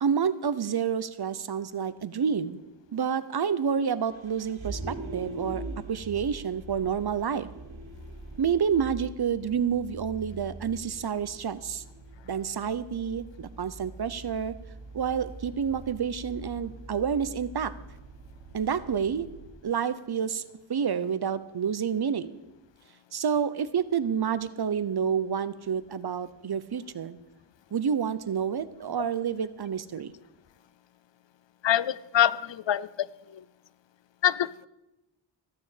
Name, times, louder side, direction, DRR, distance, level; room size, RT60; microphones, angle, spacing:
voice 1, 0.0-2.6 2.9-7.5 8.4-11.8 12.3-14.5 14.9-17.7 18.5-19.3 19.6-20.4 20.7-22.4 23.1-27.2 27.7-30.1, right 7 dB, 55° right, 0.8 m, -29 dB
Vehicle, 4.0-19.5, right 2 dB, 85° right, 2.0 m, -43 dB
voice 2, 31.6-33.1 33.3-33.4 34.2-34.7, left 11 dB, 65° left, 0.6 m, -25 dB
14.5 x 6.9 x 8.4 m
wide cardioid pair, 115°, 47 cm